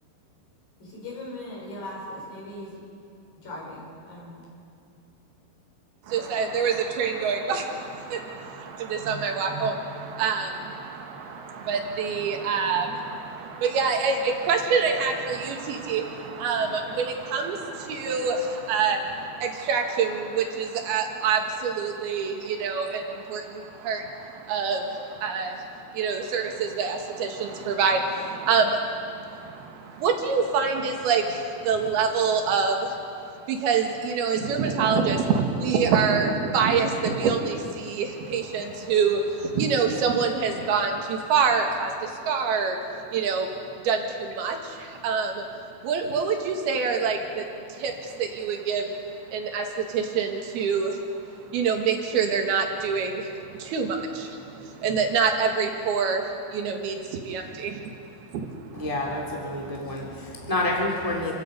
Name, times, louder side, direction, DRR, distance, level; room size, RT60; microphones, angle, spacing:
voice 1, 0.8-2.8 3.4-4.5, left 1 dB, 60° left, -3 dB, 6.7 m, -39 dB
voice 2, 6.1-33.0 33.5-42.8 43.1-43.5 43.8-45.4 45.8-48.9 49.3-51.0 51.5-56.2 56.5-57.8 58.3-58.5, right 5 dB, 75° right, 3 dB, 3.4 m, -26 dB
voice 3, 58.7-61.3, left 1 dB, 5° right, -2 dB, 2.5 m, -28 dB
30.0 x 16.0 x 5.4 m, 2.5 s
omnidirectional pair, 4.6 m